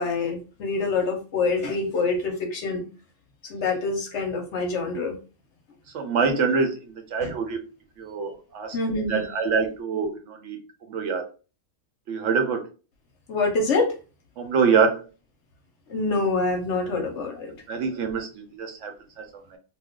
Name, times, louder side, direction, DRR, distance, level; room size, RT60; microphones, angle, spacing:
voice 1, 0.0-2.9 3.5-5.2 7.2-7.3 8.7-9.3 13.3-13.9 15.9-17.5, left 3 dB, 60° left, 4 dB, 0.9 m, -26 dB
voice 2, 5.9-7.6 8.0-10.6 10.9-11.2 12.1-12.7 14.4-15.0 17.7-19.6, right 5 dB, 60° right, 4 dB, 0.9 m, -25 dB
2.5 x 2.3 x 3.6 m, 0.34 s
omnidirectional pair, 1.5 m